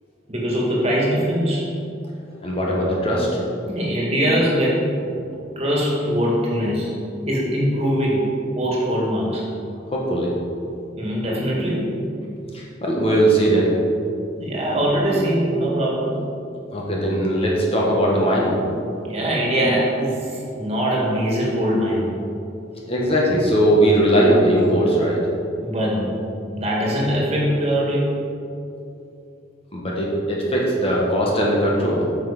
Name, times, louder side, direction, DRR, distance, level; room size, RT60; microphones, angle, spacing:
voice 1, 0.3-1.7 3.7-4.8 5.6-6.9 7.3-8.3 8.6-9.4 11.0-11.9 14.4-16.1 19.0-22.1 25.6-26.1 26.5-28.1, equal, 35° right, -4 dB, 2.1 m, -22 dB
voice 2, 2.4-3.3 9.9-10.3 12.5-13.7 16.7-18.6 22.9-25.2 29.7-32.0, right 1 dB, 30° left, -3 dB, 1.4 m, -19 dB
9.2 x 6.2 x 5.2 m, 2.7 s
head